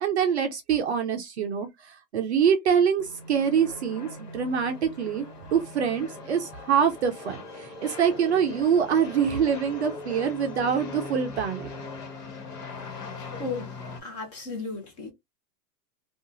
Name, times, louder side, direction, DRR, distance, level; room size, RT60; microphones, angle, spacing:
voice 1, 0.0-5.3 5.5-11.7, right 7 dB, 45° right, 0.4 m, -25 dB
sound 1, 3.0-14.0, left 3 dB, 70° left, 1.2 m, -40 dB
voice 2, 13.3-13.7 14.0-15.1, left 3 dB, 25° left, 0.7 m, -35 dB
2.7 x 2.4 x 2.5 m
hypercardioid pair, 160°, 48 cm